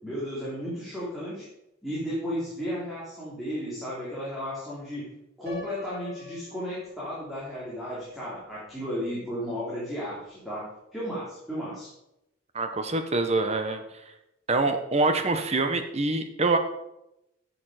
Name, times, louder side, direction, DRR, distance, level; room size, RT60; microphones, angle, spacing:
voice 1, 0.0-1.4 1.8-5.1 5.4-10.6 10.9-11.9, equal, ahead, -9 dB, 3.0 m, -34 dB
Piano, 5.5-7.4, left 5 dB, 50° right, 3.8 m, -42 dB
voice 2, 12.5-13.8 14.5-16.6, right 3 dB, 30° right, 7 dB, 1.0 m, -25 dB
10.0 x 6.9 x 4.9 m, 0.86 s
head